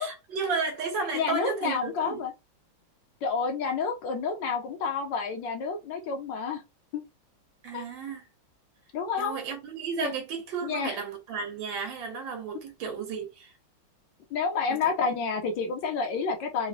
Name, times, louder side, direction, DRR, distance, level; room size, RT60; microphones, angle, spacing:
voice 1, 0.0-2.2 7.6-8.3 9.2-13.5 14.8-14.9, right 5 dB, 70° right, 1.6 m, -33 dB
voice 2, 1.1-2.3 3.2-6.6 6.9-7.0 7.7-7.8 8.9-9.4 10.0-10.1 10.6-10.9 14.3-16.7, left 5 dB, 75° left, 1.3 m, -29 dB
4.0 x 2.0 x 2.5 m
omnidirectional pair, 2.2 m